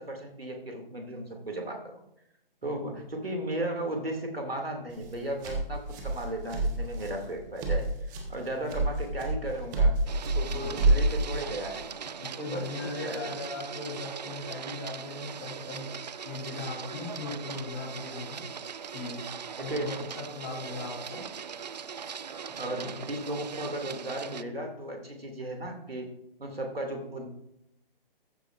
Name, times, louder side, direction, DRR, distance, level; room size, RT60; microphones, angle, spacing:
voice 1, 0.0-2.0 2.6-7.8 8.3-10.0 10.3-11.9 12.4-12.7 13.0-13.3 19.6-19.9 22.6-26.1 26.4-27.3, right 1 dB, 85° right, 2 dB, 2.6 m, -35 dB
voice 2, 2.6-3.0 8.6-8.8 9.4-9.5 10.5-10.9 12.2-18.4 18.9-21.3 22.5-23.1, left 3 dB, 25° left, -2 dB, 3.5 m, -39 dB
sound 1, 4.9-11.8, right 2 dB, 20° right, 1.4 m, -28 dB
Printer, 10.1-24.4, right 7 dB, 50° right, 0.4 m, -40 dB
14.5 x 9.1 x 2.6 m, 0.79 s
figure-of-eight pair, 140°, 29 cm